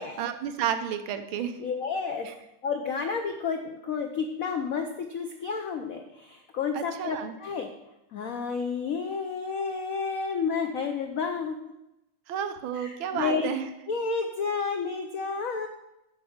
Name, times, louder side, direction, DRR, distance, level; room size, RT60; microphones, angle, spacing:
voice 1, 0.2-1.6 6.7-7.3 12.3-13.7, right 8 dB, 75° right, 8 dB, 1.5 m, -31 dB
voice 2, 1.6-2.3 2.6-7.7 8.1-11.6 12.7-13.5 13.9-15.7, left 5 dB, 90° left, 5 dB, 0.7 m, -31 dB
9.1 x 5.3 x 6.4 m, 0.91 s
omnidirectional pair, 2.3 m